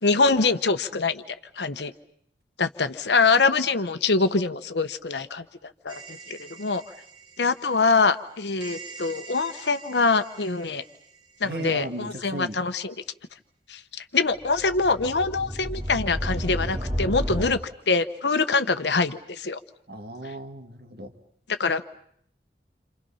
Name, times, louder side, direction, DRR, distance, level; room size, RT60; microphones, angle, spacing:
voice 1, 0.0-1.2 1.6-1.9 2.6-6.8 7.4-10.8 11.4-12.9 13.7-17.6 17.9-19.6 21.6-21.8, left 4 dB, 80° left, 10 dB, 1.1 m, -24 dB
sound 1, 5.9-7.0 8.6-10.4 14.3-17.5, equal, 25° right, 1.6 m, -33 dB
voice 2, 11.4-12.6 19.9-21.1, right 1 dB, 60° right, 6 dB, 2.2 m, -36 dB
29.0 x 27.0 x 5.7 m, 0.67 s
head